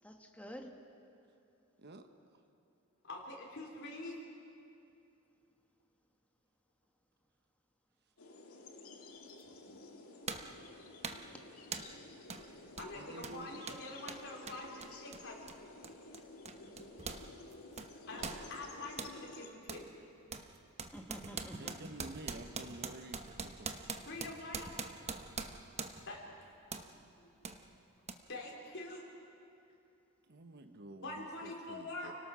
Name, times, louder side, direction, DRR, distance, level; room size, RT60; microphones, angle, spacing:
voice 1, 0.0-0.7 11.2-11.4 20.9-21.8 26.9-27.1, equal, 5° left, 3 dB, 1.6 m, -50 dB
voice 2, 3.0-4.1 12.8-15.5 18.1-19.9 24.1-24.8 26.1-26.2 27.2-27.3 28.3-29.1 31.0-32.1, left 2 dB, 60° left, -2 dB, 4.3 m, -45 dB
sound 1, 8.2-19.5, left 2 dB, 85° left, 2.1 m, -53 dB
sound 2, 9.4-9.5 10.3-10.6 11.0-11.3 11.7-12.0 12.3-12.5 12.7-17.3 17.5-19.2 19.7-19.9 20.3-26.2 26.7-26.9 27.4-27.6 28.1-28.2, right 5 dB, 30° right, 1.0 m, -44 dB
voice 3, 12.9-13.6 21.3-23.7 30.3-32.1, right 2 dB, 50° right, 7 dB, 1.1 m, -50 dB
29.5 x 18.5 x 6.3 m, 2.7 s
head